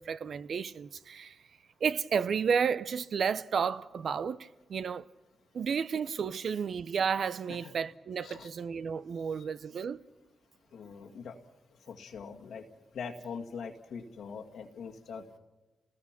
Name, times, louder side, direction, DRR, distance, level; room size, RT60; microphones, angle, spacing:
voice 1, 0.0-1.4 1.8-5.1 5.5-10.0, right 6 dB, 65° right, 0.7 m, -32 dB
voice 2, 10.7-11.4 11.9-12.6 12.9-15.4, left 5 dB, 80° left, 2.1 m, -42 dB
29.0 x 19.5 x 6.0 m
cardioid pair, 70°, 0 cm